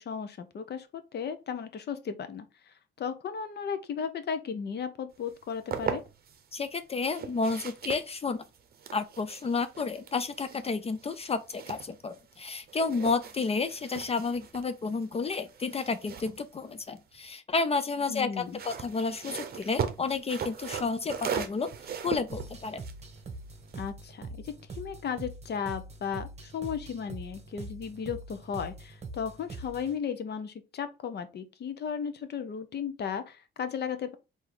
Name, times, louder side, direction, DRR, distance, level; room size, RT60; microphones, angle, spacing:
voice 1, 0.0-2.5 3.0-6.0 18.1-18.6 23.8-34.1, left 7 dB, 55° left, 0.8 m, -35 dB
sound 1, 5.3-6.4 7.0-12.4 12.7-17.3 18.3-23.9, right 7 dB, 50° right, 0.7 m, -39 dB
voice 2, 6.5-8.4 8.9-21.7 22.0-22.8, left 4 dB, 30° left, 0.4 m, -31 dB
sound 2, 22.3-30.0, right 3 dB, 30° right, 1.1 m, -43 dB
3.8 x 2.7 x 4.6 m
cardioid pair, 115°, 21 cm